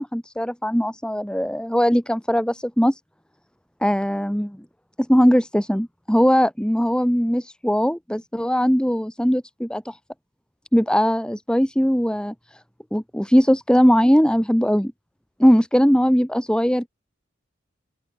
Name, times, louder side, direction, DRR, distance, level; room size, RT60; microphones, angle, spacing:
voice 1, 0.0-2.9 3.8-4.6 5.1-10.0 10.7-12.3 12.9-14.9 15.4-16.9, equal, 5° left, 2.6 m, -20 dB
open air
head